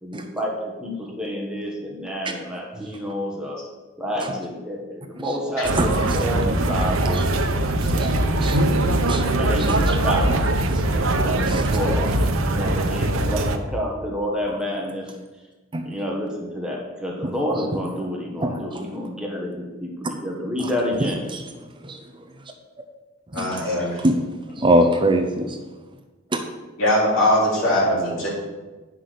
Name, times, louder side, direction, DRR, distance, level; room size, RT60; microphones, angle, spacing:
voice 1, 0.0-3.6 4.0-7.5 7.7-8.7 9.4-10.4 10.9-12.1 12.5-15.1 15.8-21.2, equal, 5° right, -2 dB, 1.4 m, -29 dB
sound 1, 5.6-13.6, right 1 dB, 90° right, 0.9 m, -21 dB
voice 2, 5.7-6.6 7.1-7.3 7.8-8.6 9.1-9.2 9.6-10.0 10.7-10.9 11.5-11.7 15.7-15.8 17.5-17.6 18.4-18.8 20.6-20.7 21.0-21.4 21.8-22.0 23.3-23.6 24.0-24.3 24.6-25.6 26.3-26.4, right 1 dB, 25° right, 5 dB, 0.7 m, -24 dB
voice 3, 23.3-24.0 26.8-28.3, left 1 dB, 70° left, -5 dB, 3.8 m, -21 dB
9.9 x 5.9 x 6.7 m, 1.2 s
head